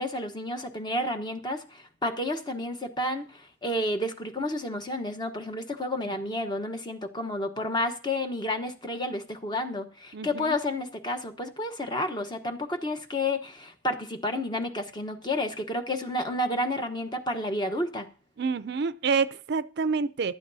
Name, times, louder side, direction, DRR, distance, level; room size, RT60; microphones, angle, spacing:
voice 1, 0.0-18.1, left 1 dB, 25° left, 1.1 m, -31 dB
voice 2, 10.1-10.5 18.4-20.4, right 5 dB, 60° right, 0.5 m, -28 dB
15.0 x 11.5 x 2.7 m
head